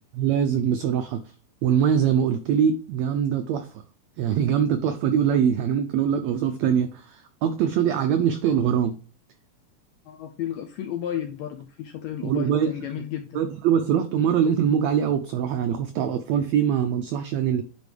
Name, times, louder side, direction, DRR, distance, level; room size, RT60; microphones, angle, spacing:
voice 1, 0.2-1.2 1.6-3.7 4.2-9.0 12.2-12.7 13.3-17.6, right 8 dB, 85° right, 8 dB, 1.5 m, -23 dB
voice 2, 10.0-13.4, left 10 dB, 80° left, 6 dB, 1.6 m, -33 dB
10.5 x 4.1 x 3.3 m, 0.36 s
omnidirectional pair, 3.8 m